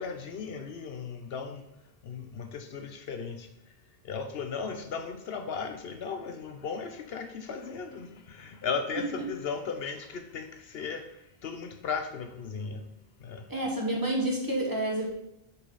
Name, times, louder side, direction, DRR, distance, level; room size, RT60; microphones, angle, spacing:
voice 1, 0.0-1.6 2.0-3.5 4.0-11.0 11.4-12.8 13.2-13.4, left 5 dB, 70° left, 7 dB, 0.9 m, -36 dB
voice 2, 13.5-15.1, right 1 dB, 20° right, -1 dB, 1.4 m, -29 dB
6.2 x 5.7 x 4.0 m, 0.81 s
omnidirectional pair, 1.1 m